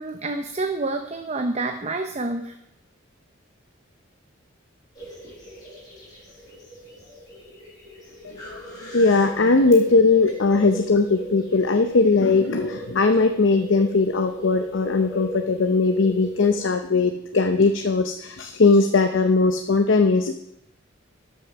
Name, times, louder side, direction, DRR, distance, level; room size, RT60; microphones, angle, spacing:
voice 1, 0.0-2.6 5.2-5.3, right 2 dB, 35° right, 5 dB, 0.7 m, -28 dB
sound 1, 4.9-16.6, right 1 dB, 20° left, 4.5 m, -38 dB
voice 2, 8.9-20.3, left 3 dB, 70° left, 6 dB, 0.7 m, -19 dB
13.0 x 6.5 x 5.9 m, 0.81 s
head